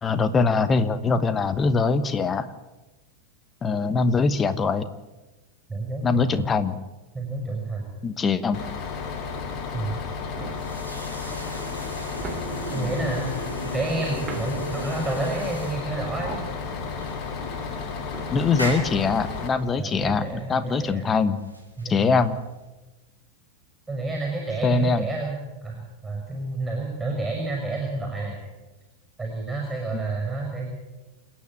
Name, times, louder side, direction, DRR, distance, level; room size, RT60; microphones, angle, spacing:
voice 1, 0.0-2.5 3.6-4.9 6.0-6.8 8.0-8.6 12.7-12.9 18.3-21.4 21.9-22.4 24.6-25.1, left 4 dB, 20° left, 13 dB, 1.3 m, -23 dB
voice 2, 5.7-6.1 6.3-6.4 7.1-7.9 9.7-10.0 12.7-13.3 13.7-16.4 19.8-21.1 21.8-22.2 23.9-28.4 29.2-30.7, right 2 dB, 10° right, 0 dB, 5.6 m, -30 dB
Bus, 8.5-19.5, left 5 dB, 40° left, 2.8 m, -33 dB
sound 1, 9.3-20.3, right 5 dB, 25° right, 2.5 m, -43 dB
sound 2, 10.2-22.7, equal, 85° left, 5.3 m, -38 dB
27.5 x 9.7 x 9.6 m, 1.1 s
figure-of-eight pair, 90°, 0 cm